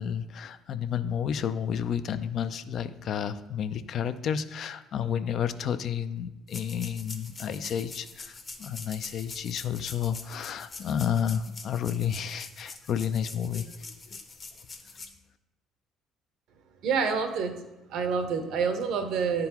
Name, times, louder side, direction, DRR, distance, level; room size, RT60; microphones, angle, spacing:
voice 1, 0.0-14.2, left 8 dB, 60° left, 12 dB, 0.3 m, -31 dB
sound 1, 6.5-15.1, left 3 dB, 40° left, 0.8 m, -44 dB
voice 2, 16.8-17.6 17.9-19.5, right 5 dB, 70° right, 7 dB, 0.7 m, -27 dB
9.5 x 3.8 x 2.9 m, 1.0 s
supercardioid pair, 75°, 0 cm